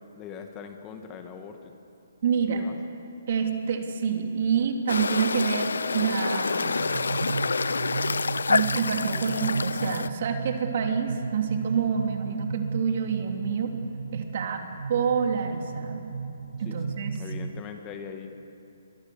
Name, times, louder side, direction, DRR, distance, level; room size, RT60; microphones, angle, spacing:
voice 1, 0.2-1.8 2.5-2.8 16.7-16.8 17.1-18.3, left 7 dB, 20° left, 5 dB, 1.8 m, -41 dB
voice 2, 2.2-2.6 3.3-6.8 8.5-13.7 14.1-14.6 14.9-16.1 16.6-17.2, right 6 dB, 55° right, 4 dB, 3.1 m, -27 dB
sound 1, 4.9-10.1, left 4 dB, 85° left, 0.7 m, -27 dB
sound 2, 6.6-17.6, right 5 dB, 80° right, 0.8 m, -35 dB
27.0 x 23.5 x 7.2 m, 2.7 s
hypercardioid pair, 150°, 0 cm